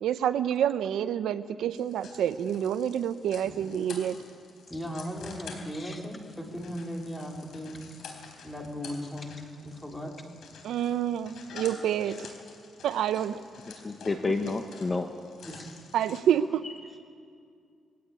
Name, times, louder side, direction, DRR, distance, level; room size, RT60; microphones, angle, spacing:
voice 1, 0.0-4.2 10.6-12.2 12.8-13.4 15.9-16.7, right 9 dB, 85° right, 12 dB, 0.7 m, -28 dB
sound 1, 1.7-16.2, left 5 dB, 75° left, 3.8 m, -49 dB
voice 2, 4.7-7.8 8.4-10.1 15.5-15.6, equal, 10° left, 0 dB, 3.3 m, -37 dB
voice 3, 13.7-15.1, left 3 dB, 25° left, 6 dB, 1.1 m, -30 dB
21.5 x 17.0 x 8.7 m, 2.3 s
cardioid pair, 125°, 0 cm